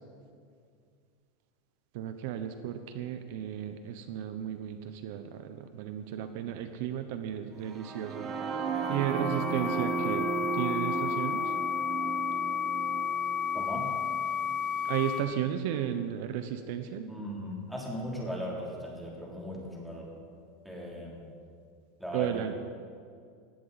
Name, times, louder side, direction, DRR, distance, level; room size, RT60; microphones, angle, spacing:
voice 1, 1.9-11.5 14.8-17.1 22.1-22.5, right 10 dB, 60° right, 8 dB, 0.9 m, -34 dB
sound 1, 7.7-15.6, right 6 dB, 25° right, 1.2 m, -35 dB
sound 2, 8.7-15.2, left 8 dB, 75° left, 2.6 m, -32 dB
voice 2, 13.5-13.9 17.1-20.1 20.6-21.3 22.0-22.5, equal, ahead, -4 dB, 3.3 m, -38 dB
20.0 x 16.0 x 4.2 m, 2.2 s
supercardioid pair, 155°, 0 cm